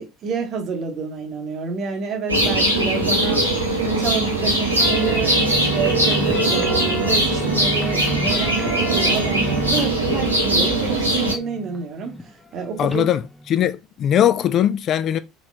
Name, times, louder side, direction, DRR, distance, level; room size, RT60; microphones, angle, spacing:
voice 1, 0.0-3.4 3.8-5.4 5.7-12.2 12.5-13.1, right 5 dB, 45° right, 0.8 m, -28 dB
sound 1, 2.3-11.3, right 1 dB, 90° right, 0.8 m, -20 dB
sound 2, 4.8-13.7, left 1 dB, 10° left, 0.6 m, -32 dB
voice 2, 12.8-15.2, left 10 dB, 45° left, 0.3 m, -20 dB
4.2 x 3.0 x 2.3 m
figure-of-eight pair, 65°, 0 cm